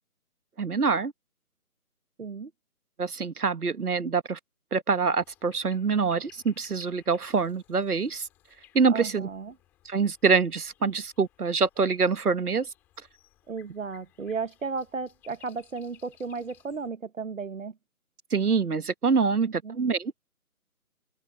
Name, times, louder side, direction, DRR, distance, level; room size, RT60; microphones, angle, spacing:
voice 1, 0.6-1.1 3.0-4.4 4.7-8.3 8.7-9.3 9.8-12.7 18.3-20.1, right 5 dB, 75° right, 1.5 m, -25 dB
voice 2, 2.2-2.5 8.9-9.5 13.5-17.7 19.4-19.8, right 4 dB, 55° right, 1.0 m, -34 dB
sound 1, 5.2-16.9, left 13 dB, 5° left, 4.4 m, -60 dB
open air
figure-of-eight pair, 180°, 45 cm